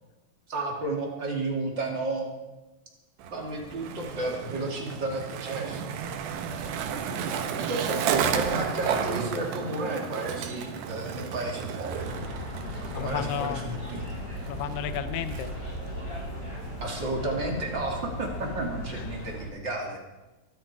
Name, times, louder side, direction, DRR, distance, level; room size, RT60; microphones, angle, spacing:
voice 1, 0.5-2.3 3.3-5.9 6.5-6.6 7.5-12.2 12.9-14.2 16.8-20.0, right 2 dB, 35° right, 0 dB, 2.5 m, -32 dB
Skateboard, 3.2-15.9, right 7 dB, 80° right, 3.4 m, -33 dB
sound 1, 11.9-19.4, left 1 dB, 20° left, 5.7 m, -37 dB
voice 2, 12.9-13.6 14.5-15.5 18.4-18.5 18.9-19.1, left 10 dB, 80° left, 10 dB, 3.0 m, -33 dB
23.5 x 13.0 x 4.8 m, 1.1 s
omnidirectional pair, 4.8 m